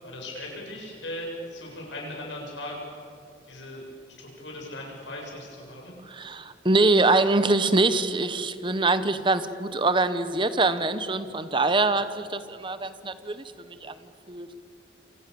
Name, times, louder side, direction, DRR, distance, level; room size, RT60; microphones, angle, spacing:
voice 1, 0.0-3.0 3.4-5.9, left 1 dB, 85° left, -1 dB, 7.9 m, -38 dB
voice 2, 6.1-14.5, right 3 dB, 25° right, 12 dB, 1.1 m, -24 dB
27.5 x 27.0 x 7.1 m, 2.7 s
head